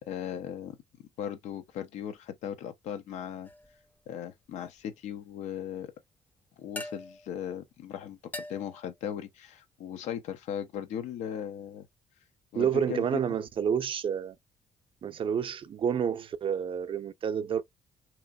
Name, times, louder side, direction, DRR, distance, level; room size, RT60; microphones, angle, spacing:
voice 1, 0.1-0.8 1.2-3.5 4.1-5.9 6.6-8.2 8.5-11.9 12.5-13.2, left 9 dB, 80° left, 0.6 m, -37 dB
sound 1, 3.4-3.9 6.8-7.4 8.3-8.9, left 1 dB, 15° left, 0.5 m, -42 dB
voice 2, 12.5-14.4 15.0-17.6, right 8 dB, 50° right, 0.5 m, -29 dB
2.9 x 2.5 x 2.3 m
cardioid pair, 75°, 12 cm